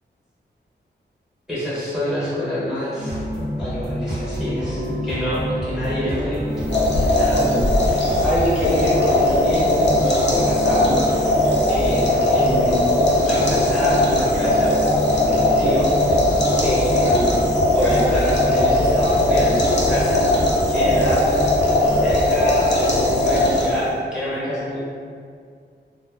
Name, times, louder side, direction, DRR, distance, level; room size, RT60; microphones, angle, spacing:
voice 1, 1.5-3.2 3.6-6.7 7.2-11.4 11.7-12.8 13.2-14.7 15.2-15.9 16.6-17.4 17.8-20.2 20.7-21.3 21.9-24.8, equal, 5° right, -10 dB, 0.7 m, -26 dB
sound 1, 3.0-22.3, equal, 55° right, 0.7 m, -28 dB
sound 2, 6.5-23.9, left 1 dB, 70° left, 0.6 m, -19 dB
2.4 x 2.2 x 3.2 m, 2.2 s
wide cardioid pair, 155°, 19 cm